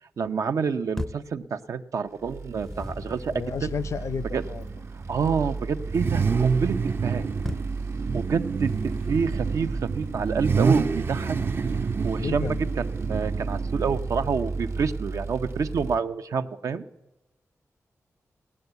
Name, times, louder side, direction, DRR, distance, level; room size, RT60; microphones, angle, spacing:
voice 1, 0.2-3.3 3.6-3.7 4.3-4.4 5.1-6.8 7.0-7.2 8.1-11.4 12.0-16.8, right 5 dB, 75° right, 9 dB, 0.8 m, -28 dB
sound 1, 1.0-1.4 2.3-3.3 7.4-7.8 8.4-9.2, left 1 dB, 5° left, 0.5 m, -37 dB
sound 2, 2.2-16.0, right 3 dB, 60° right, 1.1 m, -34 dB
voice 2, 3.3-4.7 12.2-12.6, left 6 dB, 65° left, 17 dB, 0.5 m, -32 dB
Car / Idling / Accelerating revving vroom, 3.8-15.9, right 5 dB, 45° right, 0.5 m, -29 dB
17.5 x 9.9 x 8.1 m, 0.97 s
wide cardioid pair, 105°, 5 cm